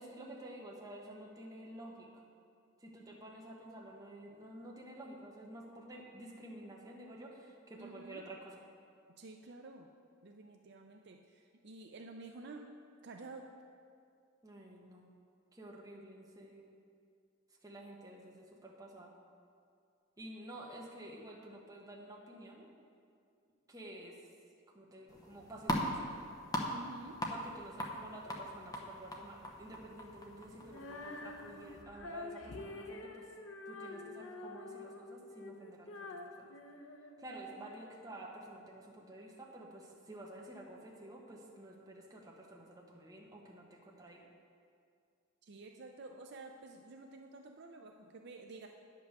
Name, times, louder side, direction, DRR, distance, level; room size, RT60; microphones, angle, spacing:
voice 1, 0.0-2.2 2.8-8.5 14.4-15.1 15.5-16.7 17.6-19.1 20.2-22.7 23.7-24.2 24.7-26.1 27.3-33.3 33.7-36.5 37.2-44.3, right 1 dB, 20° right, -2 dB, 1.3 m, -51 dB
voice 2, 7.8-8.2 9.2-9.9 10.2-12.7 13.0-13.5 26.7-27.2 45.4-48.7, right 3 dB, 55° right, 3 dB, 0.5 m, -51 dB
sound 1, 25.1-31.8, equal, 20° left, 0.9 m, -41 dB
Female singing, 30.7-37.8, left 2 dB, 85° left, 0.7 m, -47 dB
9.9 x 5.4 x 6.6 m, 2.3 s
head